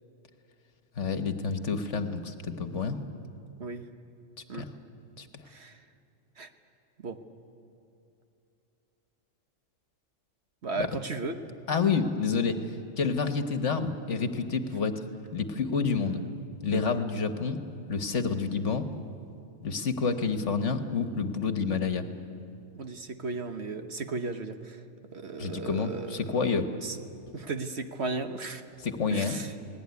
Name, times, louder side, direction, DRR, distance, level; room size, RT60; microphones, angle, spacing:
voice 1, 1.0-3.0 4.5-4.7 5.2-5.3 10.8-10.9 11.7-12.6 13.0-15.0 15.3-16.2 16.6-17.6 17.9-18.9 19.6-22.1 25.4-26.7 28.8-29.4, left 5 dB, 65° left, 8 dB, 1.6 m, -28 dB
voice 2, 5.5-5.8 6.4-6.5 7.0-7.2 10.6-11.4 16.7-16.8 22.7-24.8 25.1-26.3 26.8-27.0 27.3-28.6 29.1-29.5, right 3 dB, 55° right, 7 dB, 1.4 m, -35 dB
28.5 x 19.0 x 9.6 m, 2.6 s
omnidirectional pair, 1.4 m